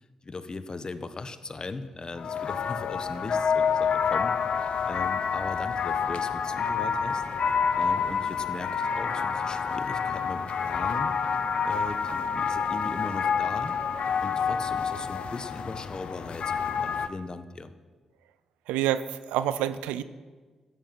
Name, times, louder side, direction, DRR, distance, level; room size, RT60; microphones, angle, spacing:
voice 1, 0.2-4.4 4.9-7.2 7.8-11.1 11.6-13.8 14.2-17.7, left 3 dB, 40° left, 11 dB, 1.1 m, -38 dB
sound 1, 2.2-17.1, left 6 dB, 65° left, 0.7 m, -28 dB
voice 2, 18.7-20.0, right 11 dB, 90° right, 14 dB, 0.4 m, -27 dB
13.0 x 9.6 x 6.1 m, 1.4 s
supercardioid pair, 40°, 2 cm